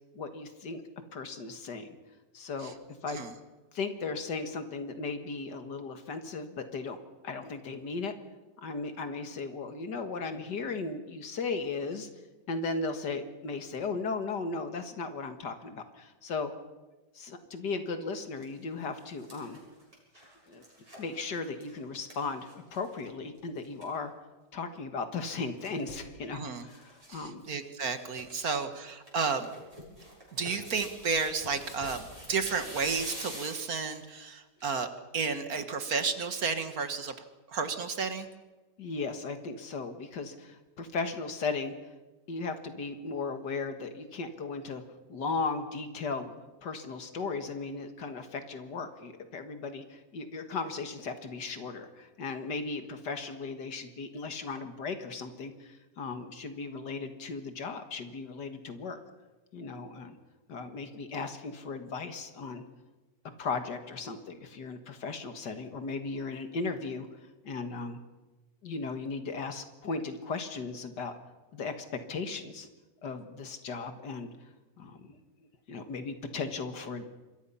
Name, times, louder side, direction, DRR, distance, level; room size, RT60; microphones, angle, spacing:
voice 1, 0.1-0.8 1.1-2.0 2.3-2.7 3.0-3.2 3.7-7.0 7.2-8.1 8.6-12.1 12.5-16.5 17.2-19.6 20.5-20.6 21.0-24.1 24.5-27.4 28.4-28.6 38.8-41.7 42.3-44.8 45.1-46.3 46.6-59.0 59.5-60.2 60.5-62.6 63.4-67.1 67.4-68.0 68.6-71.2 71.5-72.7 73.0-74.3 74.8-75.1 75.7-77.1, left 4 dB, 80° left, 8 dB, 2.3 m, -36 dB
sound 1, 18.4-18.5 18.8-23.1 23.4-23.5 23.6-23.9 25.2-26.1 26.7-27.2 27.4-27.5 27.9-28.5 28.9-34.1 34.6-34.7, equal, 20° right, 7.2 m, -46 dB
voice 2, 26.3-26.7 27.1-29.5 30.4-34.9 35.1-37.1 37.5-38.3, right 5 dB, 60° right, 9 dB, 2.0 m, -32 dB
26.5 x 22.5 x 5.7 m, 1.2 s
omnidirectional pair, 1.8 m